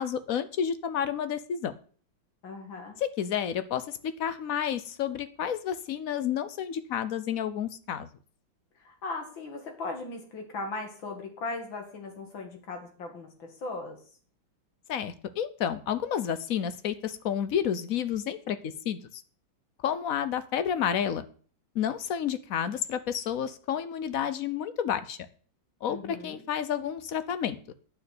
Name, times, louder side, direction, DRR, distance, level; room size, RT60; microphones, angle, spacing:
voice 1, 0.0-1.7 3.0-8.1 14.9-18.6 18.8-19.0 19.8-21.2 21.7-25.2 25.8-27.6, left 8 dB, 60° left, 13 dB, 1.0 m, -30 dB
voice 2, 2.4-3.0 8.8-14.0 25.8-26.4, left 3 dB, 80° left, 4 dB, 2.9 m, -38 dB
9.1 x 6.2 x 8.4 m, 0.43 s
omnidirectional pair, 2.1 m